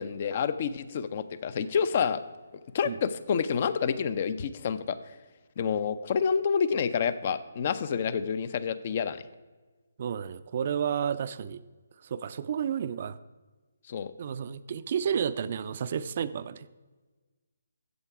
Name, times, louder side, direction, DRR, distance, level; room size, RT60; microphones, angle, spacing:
voice 1, 0.0-2.2 2.7-5.0 5.6-9.2 13.9-14.1, left 6 dB, 45° left, 14 dB, 0.7 m, -28 dB
voice 2, 10.0-11.6 12.0-13.2 14.2-16.7, right 8 dB, 45° right, 14 dB, 0.5 m, -31 dB
13.5 x 8.2 x 4.8 m, 1.3 s
figure-of-eight pair, 145°, 0 cm